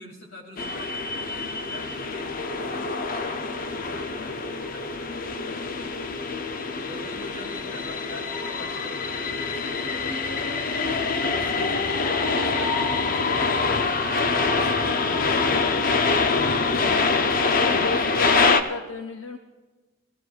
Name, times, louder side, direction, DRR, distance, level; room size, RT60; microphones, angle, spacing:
voice 1, 0.0-6.0 6.8-16.2 16.7-18.6, left 1 dB, 65° left, 0 dB, 2.6 m, -45 dB
sound 1, 0.6-18.6, left 4 dB, 45° left, 0.6 m, -25 dB
voice 2, 17.7-19.4, left 3 dB, 85° left, 6 dB, 0.6 m, -33 dB
22.0 x 14.0 x 2.4 m, 1.2 s
head